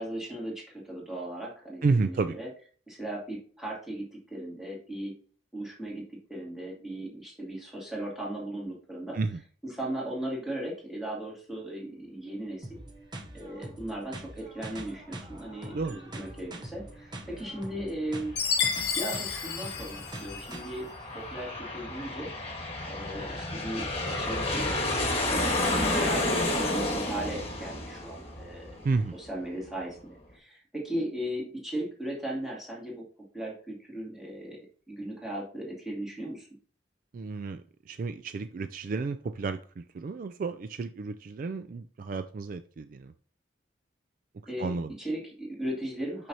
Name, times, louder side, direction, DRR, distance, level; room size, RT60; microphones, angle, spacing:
voice 1, 0.0-2.5 2.9-5.2 5.5-9.2 9.6-12.7 13.3-18.4 19.0-20.9 21.1-22.3 22.8-23.9 24.2-28.7 29.1-33.0 33.3-36.5 44.5-46.3, right 1 dB, ahead, 2.4 m, -37 dB
voice 2, 1.8-2.4 9.1-9.4 15.7-16.0 28.8-29.1 37.1-37.6 37.9-43.1 44.6-44.9, right 4 dB, 45° right, 0.3 m, -31 dB
sound 1, 12.6-20.6, right 1 dB, 25° right, 0.8 m, -44 dB
Aircraft, 18.2-29.4, left 2 dB, 30° left, 1.4 m, -31 dB
Chime, 18.4-20.7, left 7 dB, 60° left, 0.8 m, -31 dB
6.1 x 6.0 x 2.8 m
head